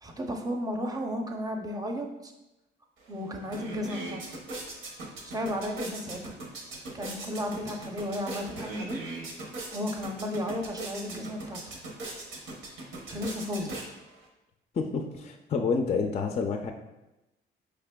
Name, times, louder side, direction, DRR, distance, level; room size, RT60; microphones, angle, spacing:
voice 1, 0.0-2.3 3.1-4.2 5.2-6.3 6.9-9.0 9.7-11.6 13.1-13.8, equal, 20° right, 3 dB, 0.6 m, -34 dB
sound 1, 3.0-3.1 3.4-14.3, right 2 dB, 85° right, 0.9 m, -40 dB
voice 2, 14.7-16.7, left 5 dB, 35° left, 3 dB, 0.4 m, -28 dB
4.8 x 3.3 x 2.2 m, 0.97 s
cardioid pair, 90°, 20 cm